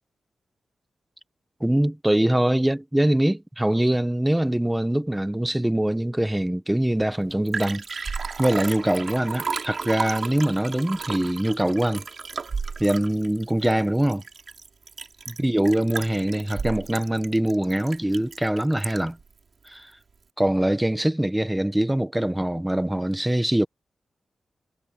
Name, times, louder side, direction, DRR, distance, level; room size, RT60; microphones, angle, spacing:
voice 1, 1.6-7.8 8.4-12.0 12.8-14.2 15.3-19.2 19.7-19.9 20.4-23.7, right 1 dB, 5° right, 1.1 m, -23 dB
Liquid, 7.0-7.1 7.3-19.2 19.7-19.8, right 5 dB, 50° right, 5.7 m, -33 dB
wide cardioid pair, 145°, 0 cm